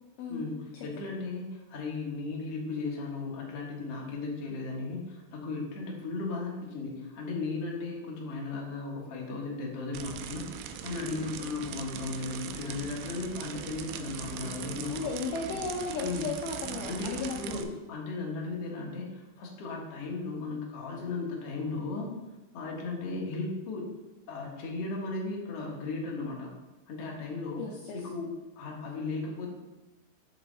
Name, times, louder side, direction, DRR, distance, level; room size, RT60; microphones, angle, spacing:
voice 1, 0.3-10.5 10.8-15.1 16.0-16.3 16.8-22.1 22.5-23.9 24.3-26.5 26.9-27.6 27.9-28.3 28.6-29.5, left 3 dB, 60° left, -2 dB, 1.6 m, -36 dB
sound 1, 9.9-17.6, right 9 dB, 90° right, 2.6 m, -40 dB
voice 2, 14.9-17.6 27.6-28.0, left 4 dB, 85° left, 0 dB, 1.9 m, -35 dB
6.2 x 5.6 x 3.8 m, 1.0 s
omnidirectional pair, 4.5 m